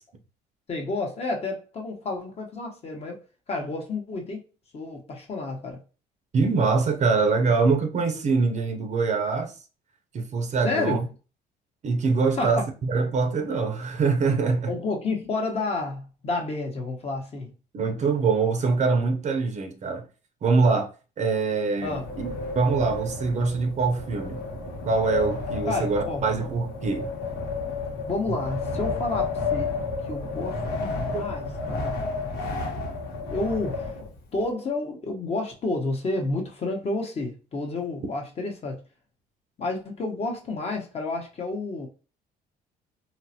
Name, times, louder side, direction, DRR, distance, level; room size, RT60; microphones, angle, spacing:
voice 1, 0.7-3.2 3.5-4.4 4.7-5.8 10.6-11.0 12.4-12.7 14.7-17.5 21.8-22.1 25.6-26.2 28.1-29.7 30.1-32.0 33.3-34.0 34.3-38.8 39.6-41.9, left 3 dB, 35° left, 0.9 m, -30 dB
voice 2, 6.3-9.5 10.1-11.0 11.8-14.7 17.7-20.0 20.4-20.9 21.2-24.4 24.8-27.1 28.3-28.4 31.1-31.2, right 4 dB, 45° right, 0.6 m, -24 dB
Wind, 21.8-34.4, left 3 dB, 80° left, 1.0 m, -31 dB
3.8 x 2.1 x 2.8 m
cardioid pair, 110°, 17 cm